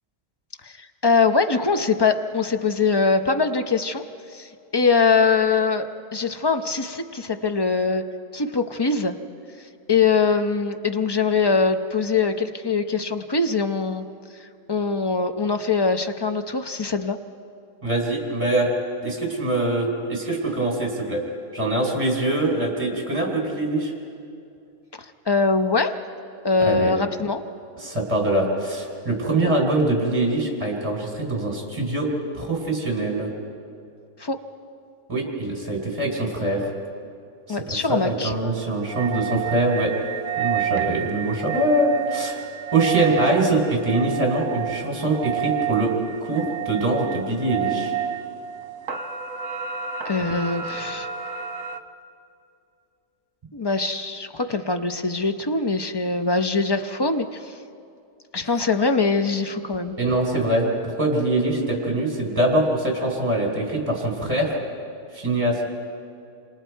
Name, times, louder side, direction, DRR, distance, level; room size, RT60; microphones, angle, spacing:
voice 1, 1.0-4.0 4.3-8.0 8.3-9.2 9.9-14.0 14.4-17.2 25.3-25.9 26.4-27.4 34.2-34.4 37.5-38.3 50.0-51.1 53.5-57.5 58.3-59.9, left 4 dB, 25° left, 7 dB, 0.5 m, -22 dB
voice 2, 17.8-18.7 19.0-21.2 21.5-23.9 26.6-26.9 27.8-32.1 32.3-33.3 35.1-36.7 37.5-39.9 40.4-42.4 42.7-45.9 46.2-47.9 60.0-64.6 65.1-65.7, right 2 dB, 20° right, 0 dB, 3.8 m, -23 dB
sound 1, 38.9-51.8, right 9 dB, 60° right, 1.5 m, -30 dB
28.0 x 27.0 x 4.6 m, 2.5 s
omnidirectional pair, 1.7 m